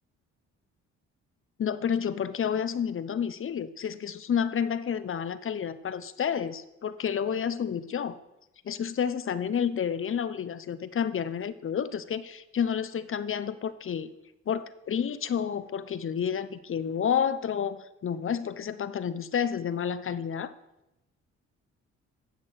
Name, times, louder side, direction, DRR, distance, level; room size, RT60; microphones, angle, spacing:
voice 1, 1.6-8.2 8.6-14.1 14.5-20.5, left 8 dB, 45° left, 14 dB, 0.9 m, -30 dB
16.5 x 6.3 x 6.5 m, 0.91 s
cardioid pair, 90°, 30 cm